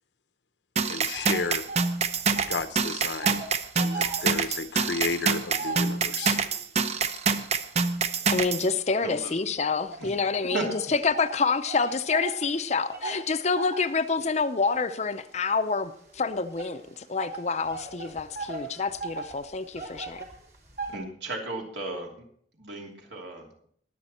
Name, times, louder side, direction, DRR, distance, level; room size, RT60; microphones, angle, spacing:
voice 1, 0.8-1.7 2.5-3.4 3.7-6.4, left 4 dB, 70° left, 0.9 m, -32 dB
sound 1, 0.8-8.7, right 5 dB, 35° right, 0.7 m, -26 dB
sound 2, 1.1-2.7 3.0-6.6 7.2-9.3 9.9-21.0, right 4 dB, 55° right, 3.4 m, -39 dB
voice 2, 8.3-20.3, left 4 dB, 40° left, 0.6 m, -27 dB
voice 3, 9.0-9.4 10.0-10.1 10.5-10.6 20.9-22.1 22.5-23.7, right 2 dB, 75° right, 3.0 m, -35 dB
21.5 x 8.0 x 4.4 m
head